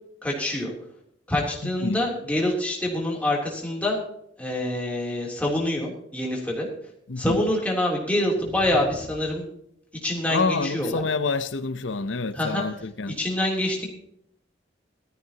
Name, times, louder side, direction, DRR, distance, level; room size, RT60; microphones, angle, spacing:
voice 1, 0.2-0.7 1.3-4.0 4.4-6.7 7.2-9.5 10.0-11.0 12.3-12.6 13.1-13.9, left 1 dB, 5° left, 3.3 m, -26 dB
voice 2, 1.6-2.0 7.1-7.4 10.3-13.2, left 4 dB, 75° left, 0.8 m, -27 dB
sound 1, 8.2-9.5, left 1 dB, 20° right, 5.9 m, -41 dB
17.5 x 13.5 x 3.0 m
head